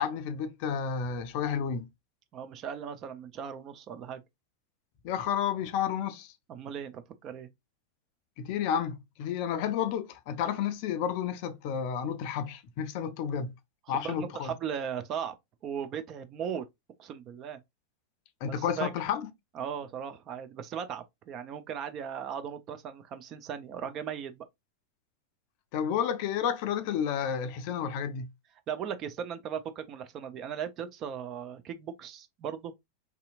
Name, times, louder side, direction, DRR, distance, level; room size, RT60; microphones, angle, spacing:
voice 1, 0.0-1.9 5.0-6.3 8.4-13.5 13.9-14.5 18.4-19.3 25.7-28.3, left 8 dB, 45° left, 0.4 m, -31 dB
voice 2, 2.3-4.2 6.5-7.5 13.9-15.3 15.6-16.6 17.0-17.6 18.5-18.9 19.5-24.5 28.7-32.7, right 8 dB, 35° right, 0.5 m, -37 dB
3.5 x 2.8 x 2.4 m
figure-of-eight pair, 90°, 0 cm